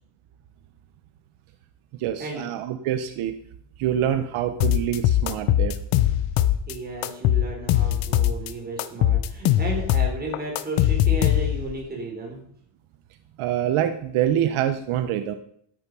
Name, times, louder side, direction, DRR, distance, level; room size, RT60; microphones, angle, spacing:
voice 1, 1.9-3.4 3.8-5.8 13.4-15.4, right 10 dB, 75° right, 9 dB, 1.1 m, -25 dB
sound 1, 4.6-6.7 7.0-8.5 8.8-11.7, left 12 dB, 80° left, 1.0 m, -21 dB
voice 2, 6.7-12.4, right 2 dB, 20° right, -1 dB, 4.2 m, -33 dB
13.0 x 8.9 x 5.6 m, 0.64 s
cardioid pair, 150°, 50 cm